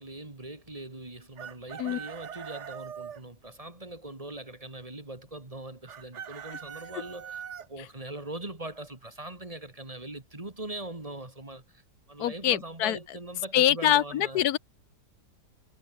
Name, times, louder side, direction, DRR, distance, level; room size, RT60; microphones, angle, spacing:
voice 1, 0.0-11.8 12.1-14.4, right 2 dB, 20° right, 2.4 m, -41 dB
Chicken rooster, 1.4-3.2 5.9-7.7, right 8 dB, 50° right, 1.2 m, -41 dB
voice 2, 12.2-13.0 13.5-14.6, left 12 dB, 70° left, 1.2 m, -24 dB
omnidirectional pair, 1.8 m